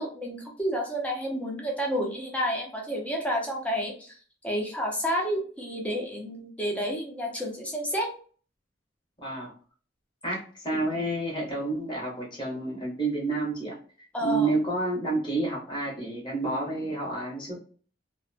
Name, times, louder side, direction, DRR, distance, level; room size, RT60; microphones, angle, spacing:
voice 1, 0.0-4.1 4.4-8.1 14.1-14.5, equal, 5° left, -1 dB, 0.6 m, -30 dB
voice 2, 9.2-9.5 10.2-13.7 14.2-17.6, right 2 dB, 25° left, -4 dB, 1.0 m, -29 dB
2.5 x 2.2 x 2.6 m, 0.41 s
head